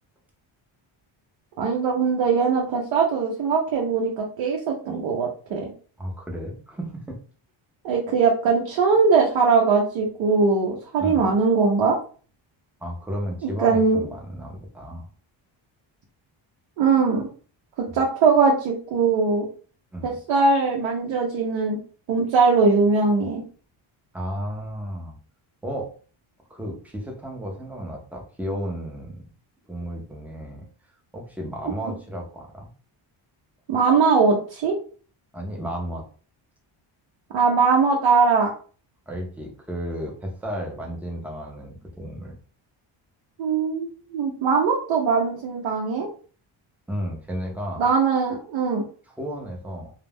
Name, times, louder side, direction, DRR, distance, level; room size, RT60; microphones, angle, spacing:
voice 1, 1.6-5.7 7.8-12.0 13.4-14.0 16.8-17.3 17.9-19.5 20.0-21.8 22.1-23.4 33.7-34.8 37.3-38.5 43.4-46.1 47.8-48.8, right 4 dB, 70° right, -1 dB, 0.7 m, -21 dB
voice 2, 6.0-7.2 11.0-11.3 12.8-15.1 17.9-18.0 19.9-20.1 24.1-25.2 25.6-25.9 26.5-29.2 29.7-30.6 31.1-32.7 35.3-36.0 39.1-42.3 46.9-47.9 49.1-49.9, equal, 5° right, 0 dB, 0.5 m, -33 dB
2.3 x 2.1 x 3.3 m, 0.40 s
cardioid pair, 145°, 48 cm